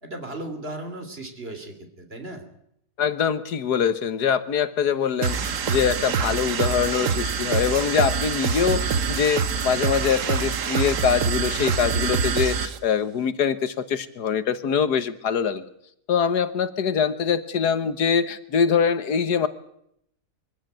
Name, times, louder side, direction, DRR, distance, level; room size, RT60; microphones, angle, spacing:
voice 1, 0.0-2.5, right 1 dB, 35° right, 6 dB, 3.3 m, -36 dB
voice 2, 3.0-15.7 16.1-19.5, left 7 dB, 85° left, 12 dB, 1.8 m, -23 dB
sound 1, 5.2-12.8, right 6 dB, 55° right, 1.4 m, -25 dB
23.5 x 15.5 x 9.1 m, 0.75 s
omnidirectional pair, 1.7 m